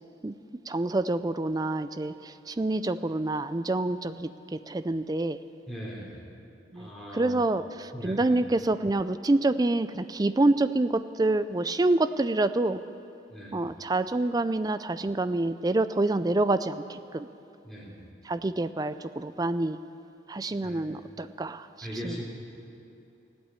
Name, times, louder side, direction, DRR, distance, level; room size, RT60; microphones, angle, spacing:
voice 1, 0.7-5.4 6.7-12.8 13.5-17.3 18.2-19.8 20.3-22.2, right 2 dB, 20° right, 12 dB, 0.4 m, -27 dB
voice 2, 5.7-6.1 6.7-7.4 7.9-8.4 13.3-13.6 17.6-17.9 20.6-20.9 21.8-22.2, equal, ahead, -6 dB, 3.4 m, -39 dB
15.5 x 8.8 x 9.8 m, 2.7 s
head